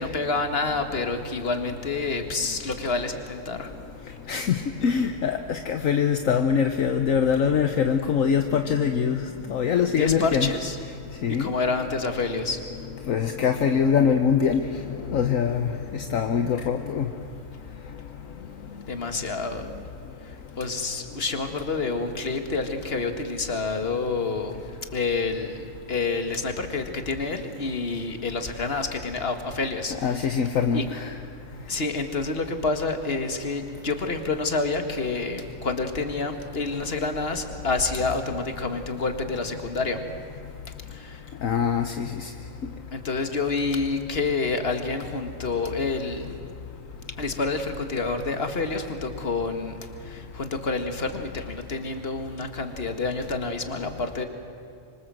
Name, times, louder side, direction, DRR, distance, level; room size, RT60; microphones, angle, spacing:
voice 1, 0.0-3.7 10.0-10.8 11.4-12.6 18.9-19.7 20.2-24.6 24.9-30.3 30.7-30.8 31.7-40.0 40.9-41.2 42.9-46.4 47.2-54.3, left 3 dB, 40° left, 6 dB, 2.0 m, -28 dB
voice 2, 4.3-9.2 9.5-10.5 11.2-11.5 13.1-14.7 15.1-17.1 30.0-31.1 41.4-42.3, left 7 dB, 65° left, 7 dB, 1.3 m, -23 dB
25.5 x 25.0 x 7.7 m, 2.3 s
omnidirectional pair, 1.5 m